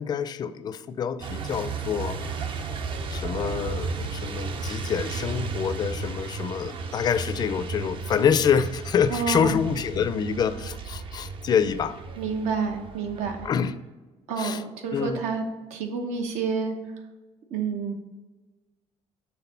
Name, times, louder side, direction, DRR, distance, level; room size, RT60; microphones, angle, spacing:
voice 1, 0.0-2.7 3.1-12.0 13.4-13.7 14.4-14.6 14.9-15.2, left 7 dB, 35° left, 13 dB, 0.4 m, -26 dB
Truck, 1.2-13.5, right 4 dB, 45° right, 0.6 m, -34 dB
voice 2, 9.1-9.6 12.2-13.5 14.3-15.4 15.7-16.7 17.5-17.9, right 5 dB, 75° right, 4 dB, 1.0 m, -29 dB
5.9 x 3.8 x 5.6 m, 1.2 s
cardioid pair, 135°, 12 cm